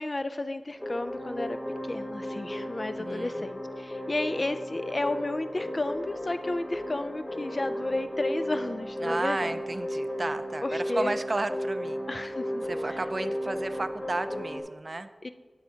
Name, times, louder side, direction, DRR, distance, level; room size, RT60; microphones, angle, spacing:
voice 1, 0.0-1.6 1.8-9.6 10.6-11.2 12.1-12.7 15.2-15.3, left 2 dB, 50° left, 10 dB, 0.4 m, -32 dB
sound 1, 0.8-14.6, equal, 30° left, 1.4 m, -34 dB
voice 2, 3.0-3.5 9.0-12.0 12.6-15.1, right 2 dB, 55° right, 11 dB, 0.4 m, -33 dB
8.4 x 7.8 x 2.8 m, 1.3 s
wide cardioid pair, 40°, 0 cm